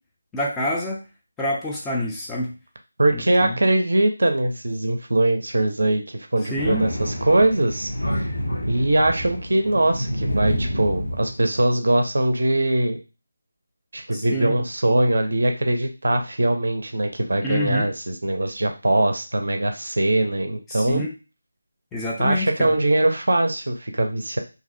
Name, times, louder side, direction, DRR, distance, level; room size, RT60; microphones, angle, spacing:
voice 1, 0.3-1.0 1.4-2.5 3.1-3.6 6.5-6.9 14.1-14.6 17.4-17.9 20.7-21.1 21.9-22.7, left 1 dB, 5° left, -3 dB, 0.4 m, -27 dB
voice 2, 3.0-7.9 8.7-13.0 13.9-21.0 22.2-24.4, right 1 dB, 55° right, 5 dB, 0.4 m, -21 dB
Thunder, 6.6-11.7, equal, 80° left, 0.8 m, -28 dB
2.5 x 2.0 x 2.4 m, 0.31 s
figure-of-eight pair, 160°, 0 cm